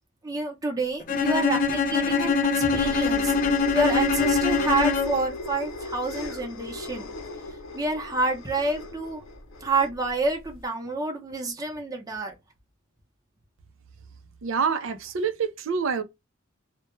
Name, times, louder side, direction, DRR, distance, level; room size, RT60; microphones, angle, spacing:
voice 1, 0.2-3.3 3.7-7.1 7.7-9.2 9.6-12.3, right 2 dB, 20° right, 0.6 m, -28 dB
Bowed string instrument, 1.1-5.3, left 5 dB, 40° left, 0.4 m, -23 dB
sound 1, 1.8-10.6, left 1 dB, 80° left, 0.7 m, -36 dB
voice 2, 14.4-16.0, right 5 dB, 75° right, 0.5 m, -26 dB
2.2 x 2.1 x 3.0 m
head